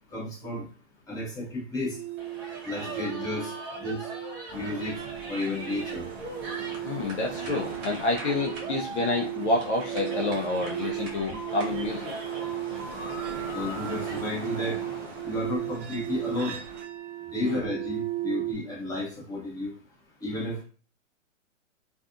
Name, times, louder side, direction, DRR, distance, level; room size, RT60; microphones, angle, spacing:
voice 1, 0.1-0.7 1.1-2.0 2.6-3.5 3.8-4.0 4.5-5.0 5.3-6.0 13.5-14.8 15.2-16.6 17.3-19.7 20.2-20.6, left 1 dB, 10° left, -6 dB, 0.8 m, -32 dB
sound 1, 1.9-18.5, right 16 dB, 60° right, 0.6 m, -36 dB
sound 2, 2.2-14.2, right 1 dB, 40° right, 0.9 m, -41 dB
sound 3, 4.5-16.8, right 2 dB, 15° right, 0.4 m, -42 dB
voice 2, 6.8-12.1 17.4-17.6, left 2 dB, 60° left, 0 dB, 0.6 m, -29 dB
2.5 x 2.4 x 2.4 m, 0.39 s
hypercardioid pair, 125°, 39 cm